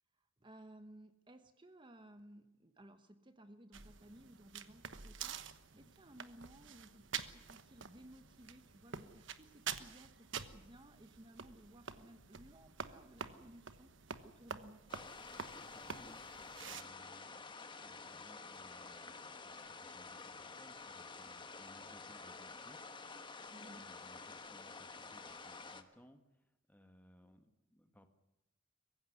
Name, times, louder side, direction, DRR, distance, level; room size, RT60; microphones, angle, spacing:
voice 1, 0.2-13.9 14.2-14.8 23.5-23.9, right 1 dB, 25° right, 9 dB, 1.0 m, -58 dB
sound 1, 3.7-16.8, right 7 dB, 70° right, 1.2 m, -48 dB
sound 2, 14.9-25.8, left 4 dB, 25° left, 1.3 m, -50 dB
voice 2, 15.6-16.2 16.6-22.8 23.7-28.1, equal, 10° left, 7 dB, 1.6 m, -63 dB
23.0 x 15.5 x 9.9 m, 0.96 s
head